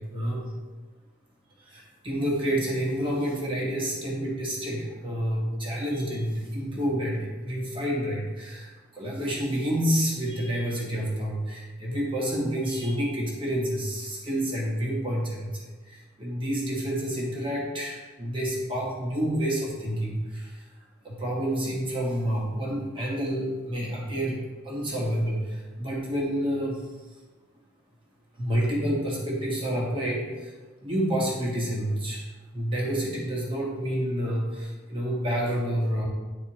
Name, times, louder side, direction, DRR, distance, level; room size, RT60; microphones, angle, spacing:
voice 1, 0.1-0.5 1.7-20.6 21.0-26.8 28.4-30.5 30.8-32.2 32.5-36.1, equal, 25° right, -4 dB, 1.4 m, -29 dB
9.9 x 4.2 x 3.0 m, 1.3 s
head